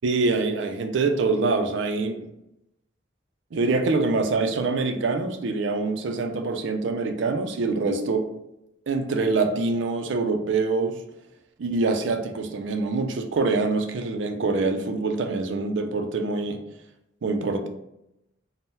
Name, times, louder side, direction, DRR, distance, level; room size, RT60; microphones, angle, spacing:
voice 1, 0.0-2.3 3.5-8.3 8.9-11.0 11.6-16.6 17.2-17.7, right 3 dB, 65° right, 0.4 m, -25 dB
2.7 x 2.0 x 3.6 m
head